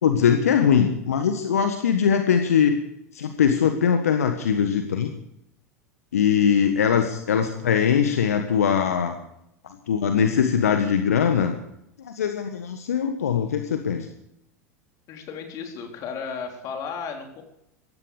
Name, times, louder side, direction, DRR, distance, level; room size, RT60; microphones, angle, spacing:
voice 1, 0.0-2.8 3.1-5.1 6.1-9.1 9.9-11.5 12.0-14.1, left 7 dB, 75° left, 7 dB, 1.5 m, -21 dB
voice 2, 15.1-17.4, left 6 dB, 45° left, 3 dB, 4.1 m, -34 dB
17.5 x 15.0 x 5.0 m, 0.80 s
figure-of-eight pair, 80°, 8 cm